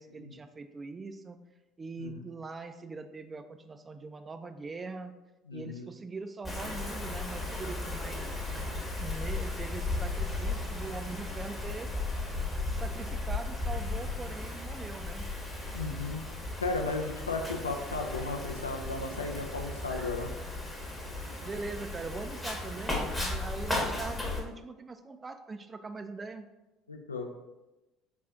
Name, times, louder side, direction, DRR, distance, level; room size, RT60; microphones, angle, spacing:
voice 1, 0.0-1.4 1.8-5.1 5.5-8.4 9.0-11.9 12.7-15.3 21.4-26.5, right 3 dB, 25° right, 8 dB, 0.3 m, -42 dB
voice 2, 5.5-5.9 15.7-16.2 16.6-20.3 26.9-27.3, left 3 dB, 85° left, 2 dB, 0.4 m, -35 dB
Wind, 6.4-24.4, left 2 dB, 15° left, 1.0 m, -35 dB
4.2 x 2.4 x 3.6 m, 1.0 s
figure-of-eight pair, 60°, 0 cm